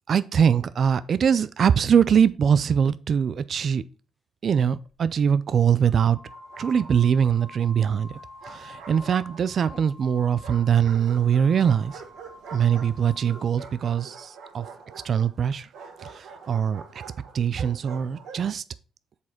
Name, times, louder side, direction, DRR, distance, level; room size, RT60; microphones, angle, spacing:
voice 1, 0.1-3.8 4.4-6.2 6.6-12.0 12.5-14.7 15.0-15.7 16.0-17.0 17.3-18.6, right 8 dB, 55° right, 0.3 m, -22 dB
sound 1, 4.9-5.1 5.8-13.6, left 2 dB, 5° right, 1.0 m, -47 dB
Bark, 6.3-7.2 8.1-9.7 10.4-18.5, right 5 dB, 75° right, 1.4 m, -45 dB
7.3 x 4.2 x 4.4 m
cardioid pair, 90°, 0 cm